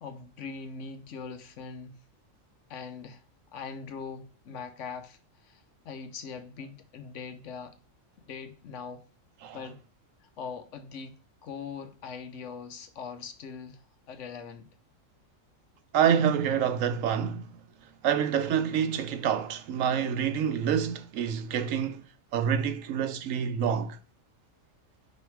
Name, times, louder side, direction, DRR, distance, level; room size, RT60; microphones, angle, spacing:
voice 1, 0.0-2.0 2.7-3.2 3.5-7.8 8.3-9.0 9.5-9.8 10.2-14.7, left 5 dB, 70° left, 1.1 m, -41 dB
voice 2, 15.9-17.5 18.0-22.0 22.3-24.0, right 8 dB, 75° right, 1.1 m, -27 dB
5.5 x 5.1 x 4.6 m
omnidirectional pair, 1.4 m